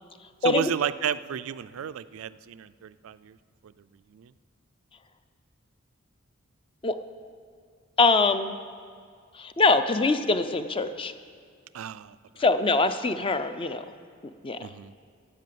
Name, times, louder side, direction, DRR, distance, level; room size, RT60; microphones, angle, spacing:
voice 1, 0.4-3.4 3.6-3.7 4.1-4.3 11.7-12.2 14.6-14.9, right 8 dB, 80° right, 15 dB, 0.4 m, -32 dB
voice 2, 8.0-8.6 9.4-11.1 12.4-13.8 14.4-14.6, left 3 dB, 25° left, 11 dB, 0.5 m, -23 dB
10.5 x 8.4 x 7.6 m, 2.2 s
head